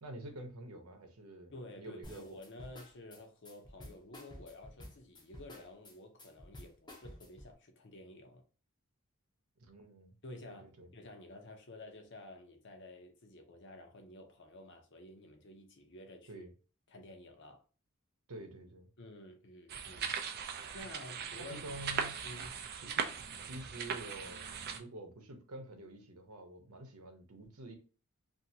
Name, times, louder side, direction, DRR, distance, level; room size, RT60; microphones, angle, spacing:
voice 1, 0.0-2.4 9.6-10.1 10.4-10.9 16.3-16.5 18.3-18.9 21.4-22.2 22.7-23.1 23.4-27.7, right 1 dB, 90° right, 0.8 m, -48 dB
voice 2, 1.5-8.4 10.2-16.4 16.9-17.6 19.0-20.1 20.7-21.6 22.2-22.6, left 1 dB, 55° left, 0.7 m, -51 dB
sound 1, 2.0-7.5, left 1 dB, 20° left, 0.6 m, -52 dB
sound 2, 19.7-24.8, right 7 dB, 45° right, 0.4 m, -39 dB
2.7 x 2.6 x 2.7 m
head